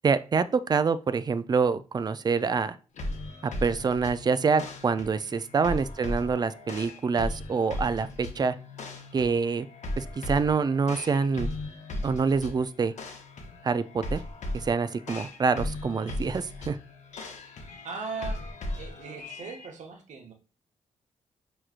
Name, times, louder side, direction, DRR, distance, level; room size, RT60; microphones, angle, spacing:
voice 1, 0.0-2.8 3.4-8.6 9.1-9.7 10.0-11.5 12.0-12.9 13.6-14.2 14.5-16.8, right 5 dB, 30° right, 14 dB, 0.4 m, -26 dB
sound 1, 2.9-19.7, left 1 dB, 65° left, 0.8 m, -37 dB
voice 2, 17.8-18.5 18.8-20.3, right 4 dB, 70° right, 2 dB, 0.9 m, -39 dB
4.7 x 3.0 x 2.4 m, 0.35 s
supercardioid pair, 55°, 13 cm